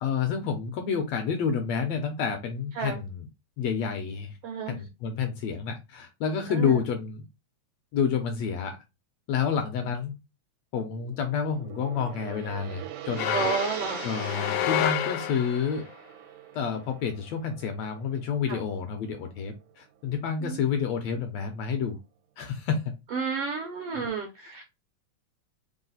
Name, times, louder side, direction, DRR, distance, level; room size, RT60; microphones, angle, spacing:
voice 1, 0.0-3.3 3.6-4.3 4.7-7.2 7.9-8.8 9.3-10.2 10.7-13.4 14.0-15.9 16.5-22.0 22.4-22.9 23.9-24.0 24.4-24.6, left 6 dB, 75° left, 1.7 m, -29 dB
voice 2, 4.4-4.8 6.5-6.8 13.3-14.1 14.4-14.6 18.5-18.6 20.4-20.6 23.1-24.6, right 5 dB, 75° right, 1.4 m, -31 dB
Gong, 10.9-19.2, right 11 dB, 90° right, 2.1 m, -42 dB
sound 1, 13.2-15.8, left 10 dB, 90° left, 2.1 m, -29 dB
4.8 x 2.0 x 3.9 m
omnidirectional pair, 3.5 m